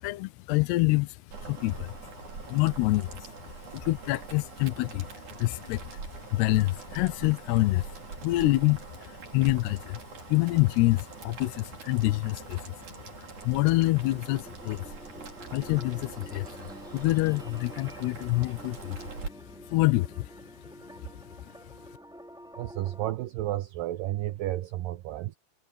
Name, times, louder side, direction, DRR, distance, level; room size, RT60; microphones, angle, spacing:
voice 1, 0.0-2.1 2.4-10.0 10.3-15.0 15.5-19.2 19.6-21.8, left 20 dB, 80° left, 2.8 m, -27 dB
Boiling, 1.3-19.3, right 5 dB, 50° right, 5.1 m, -44 dB
sound 1, 13.6-23.1, equal, ahead, 2.7 m, -48 dB
voice 2, 22.6-25.4, right 14 dB, 90° right, 2.0 m, -32 dB
omnidirectional pair, 4.8 m